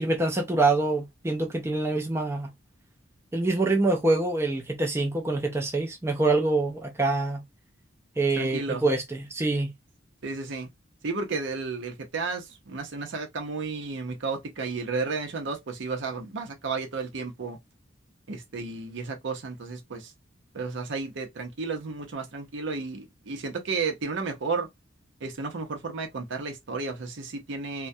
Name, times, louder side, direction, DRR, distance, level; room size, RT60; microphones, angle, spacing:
voice 1, 0.0-2.5 3.3-7.4 8.2-9.7, right 2 dB, 15° right, 0.4 m, -25 dB
voice 2, 8.4-8.8 10.2-10.7 11.0-17.6 18.3-20.1 20.5-24.7 25.2-27.9, right 4 dB, 65° right, 0.6 m, -32 dB
2.2 x 2.1 x 2.6 m
head